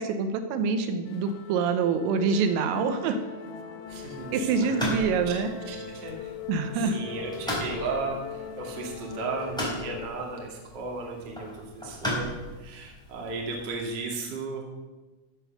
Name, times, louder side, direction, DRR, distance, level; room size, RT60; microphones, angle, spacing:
voice 1, 0.0-3.2 4.3-5.5 6.5-7.0, right 5 dB, 85° right, 8 dB, 3.5 m, -26 dB
sound 1, 1.1-10.1, left 6 dB, 75° left, 3.0 m, -41 dB
sound 2, 1.8-9.6, left 4 dB, 35° left, 3.2 m, -48 dB
sound 3, 3.8-13.8, equal, ahead, 3.7 m, -37 dB
voice 2, 3.9-6.3 6.7-14.7, right 3 dB, 40° right, -1 dB, 1.6 m, -35 dB
14.5 x 7.1 x 6.7 m, 1.2 s
omnidirectional pair, 5.9 m